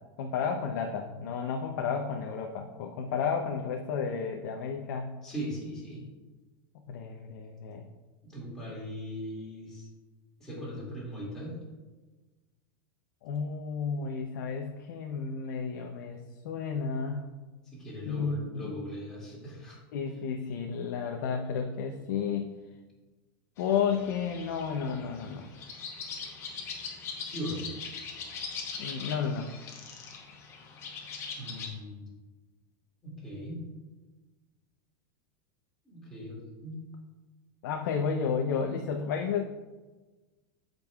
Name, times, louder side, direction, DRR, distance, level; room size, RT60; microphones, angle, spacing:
voice 1, 0.2-5.1 6.9-7.8 13.2-16.2 16.4-17.3 18.1-18.7 19.9-22.4 23.6-25.5 28.8-29.5 37.6-39.4, left 6 dB, 60° left, 2 dB, 0.7 m, -32 dB
voice 2, 5.2-6.0 8.2-9.9 10.4-11.6 17.7-19.8 27.2-27.7 31.4-32.1 33.0-33.6 35.8-36.8, equal, 5° left, -7 dB, 2.2 m, -39 dB
sound 1, 23.6-31.7, left 5 dB, 25° left, 0.9 m, -41 dB
15.0 x 5.3 x 2.3 m, 1.2 s
supercardioid pair, 175°, 11 cm